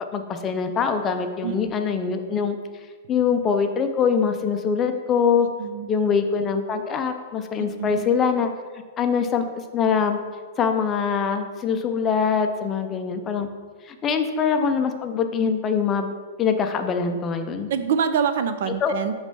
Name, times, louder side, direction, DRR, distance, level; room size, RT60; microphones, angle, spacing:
voice 1, 0.1-2.6 3.1-5.5 5.9-8.5 9.0-10.2 10.6-13.5 13.9-16.1 16.4-17.7 18.8-18.9, left 6 dB, 20° left, 6 dB, 0.5 m, -23 dB
voice 2, 7.6-8.0 17.7-19.1, right 7 dB, 60° right, 10 dB, 0.5 m, -25 dB
6.6 x 3.2 x 5.4 m, 1.5 s
hypercardioid pair, 155°, 0 cm